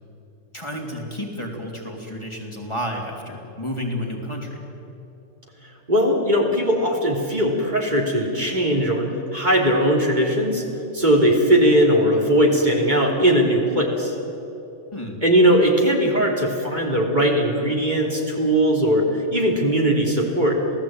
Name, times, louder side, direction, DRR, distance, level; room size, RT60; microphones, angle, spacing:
voice 1, 0.5-4.6 14.9-15.2, equal, 20° left, 0 dB, 3.4 m, -31 dB
voice 2, 5.9-9.1 9.3-10.6 10.9-14.1 15.2-20.6, equal, 35° right, 0 dB, 3.4 m, -19 dB
27.5 x 18.0 x 8.9 m, 2.9 s
omnidirectional pair, 1.3 m